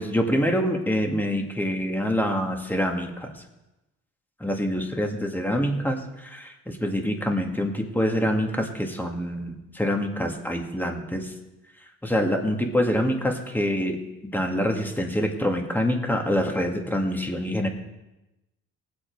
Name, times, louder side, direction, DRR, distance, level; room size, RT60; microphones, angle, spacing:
voice 1, 0.0-3.3 4.4-11.3 12.0-14.0 14.3-17.7, equal, 5° left, 3 dB, 2.0 m, -26 dB
19.5 x 8.0 x 4.6 m, 0.98 s
cardioid pair, 90°, 30 cm